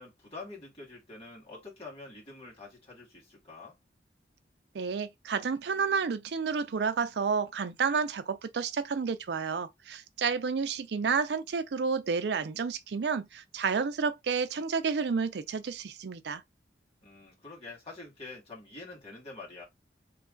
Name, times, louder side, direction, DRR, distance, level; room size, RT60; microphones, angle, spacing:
voice 1, 0.0-3.8 17.0-19.6, left 3 dB, 35° left, 1.8 m, -46 dB
voice 2, 4.7-16.4, right 5 dB, 70° right, 0.4 m, -30 dB
3.1 x 2.4 x 3.7 m
head